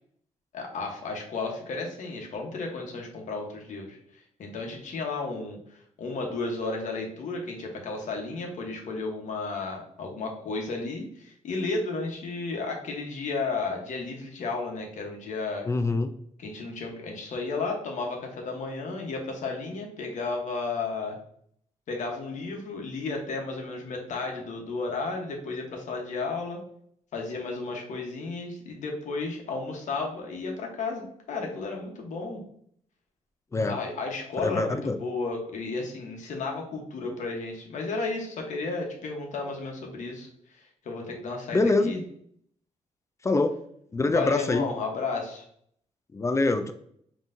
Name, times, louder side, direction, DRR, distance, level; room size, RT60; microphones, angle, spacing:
voice 1, 0.5-15.7 16.4-21.2 21.9-26.6 27.1-32.4 33.6-42.0 44.1-45.4, left 3 dB, 70° left, 1 dB, 1.1 m, -33 dB
voice 2, 15.7-16.1 33.5-33.8 34.4-35.0 41.5-42.0 43.2-43.6 43.9-44.7 46.1-46.7, left 3 dB, 25° left, 8 dB, 0.3 m, -24 dB
5.5 x 3.0 x 2.6 m, 0.66 s
cardioid pair, 125°, 13 cm